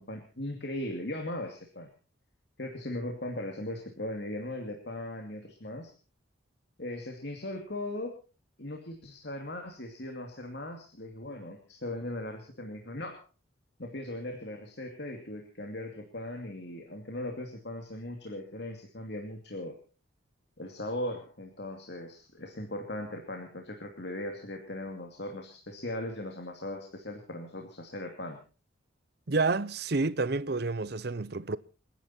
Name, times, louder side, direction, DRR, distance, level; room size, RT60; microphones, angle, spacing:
voice 1, 0.0-1.9 2.6-5.9 6.8-8.2 8.6-13.2 13.8-19.8 20.6-28.4, left 1 dB, 55° left, 2.5 m, -38 dB
voice 2, 29.3-31.6, right 3 dB, 55° right, 0.7 m, -29 dB
29.0 x 10.5 x 4.4 m
head